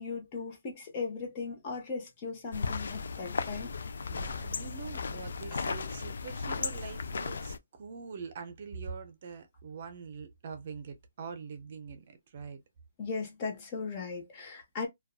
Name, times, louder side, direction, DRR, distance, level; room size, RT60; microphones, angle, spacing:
voice 1, 0.0-3.7 5.5-5.6 13.0-14.9, left 4 dB, 25° left, 0.7 m, -37 dB
sound 1, 2.5-7.6, left 4 dB, 70° left, 0.3 m, -36 dB
voice 2, 4.1-12.6, right 5 dB, 45° right, 0.6 m, -44 dB
2.4 x 2.3 x 2.3 m
hypercardioid pair, 165°, 0 cm